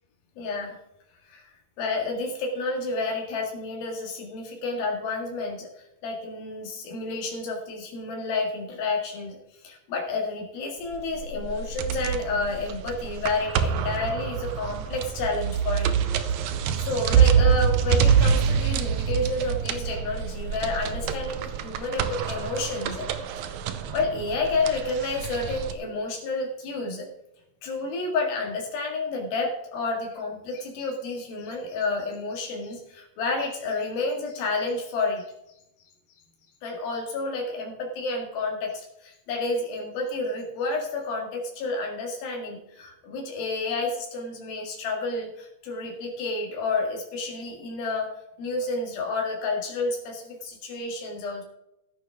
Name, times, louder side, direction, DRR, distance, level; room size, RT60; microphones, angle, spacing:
voice 1, 0.4-0.8 1.3-1.5 1.8-5.7 6.0-9.4 9.6-15.9 16.8-23.1 23.9-27.1 27.6-35.3 36.6-48.1 48.4-51.4, left 3 dB, 90° left, 0 dB, 3.9 m, -30 dB
sound 1, 10.9-25.7, right 7 dB, 75° right, 1.7 m, -26 dB
14.5 x 9.7 x 3.6 m, 0.84 s
omnidirectional pair, 4.1 m